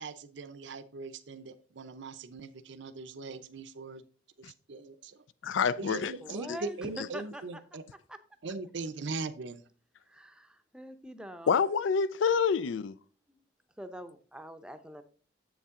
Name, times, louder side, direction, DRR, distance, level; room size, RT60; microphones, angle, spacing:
voice 1, 0.0-4.0 4.4-5.2 5.8-7.8 8.4-9.6, right 3 dB, 75° right, 0.6 m, -40 dB
voice 2, 5.4-6.1 6.5-6.6 11.5-12.9, left 6 dB, 80° left, 0.4 m, -27 dB
voice 3, 6.2-7.6 8.1-8.2 10.1-11.6 13.3-13.4 13.8-15.0, equal, 5° right, 0.6 m, -44 dB
7.7 x 7.0 x 3.6 m
head